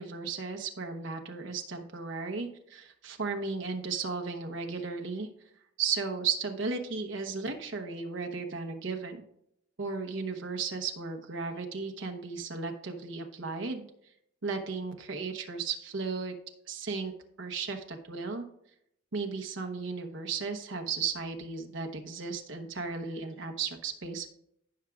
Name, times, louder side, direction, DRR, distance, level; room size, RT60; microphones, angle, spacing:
voice 1, 0.0-5.3 5.8-9.2 9.8-13.9 14.4-16.3 16.7-17.1 17.4-18.4 19.1-24.3, right 4 dB, 70° right, 5 dB, 1.0 m, -35 dB
15.0 x 5.9 x 2.4 m, 0.75 s
head